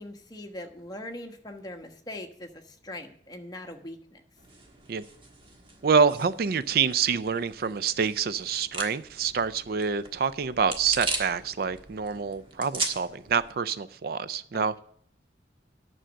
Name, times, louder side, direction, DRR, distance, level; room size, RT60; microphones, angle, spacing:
voice 1, 0.0-4.2 14.5-14.8, left 1 dB, 20° left, 4 dB, 1.1 m, -41 dB
sound 1, 4.4-13.5, right 3 dB, 30° right, 1.5 m, -39 dB
voice 2, 5.8-14.8, right 6 dB, 55° right, 15 dB, 0.4 m, -26 dB
10.0 x 6.3 x 7.6 m, 0.62 s
head